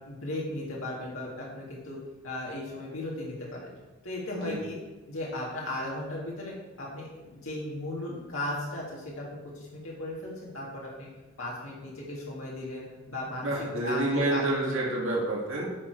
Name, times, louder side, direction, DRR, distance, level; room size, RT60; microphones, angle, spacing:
voice 1, 0.1-2.0 2.2-3.7 4.0-4.8 5.1-11.1 11.4-13.5 13.8-14.9, left 1 dB, 80° left, -5 dB, 2.0 m, -36 dB
voice 2, 13.4-15.7, right 2 dB, 70° right, -4 dB, 2.1 m, -28 dB
9.8 x 6.4 x 4.6 m, 1.2 s
head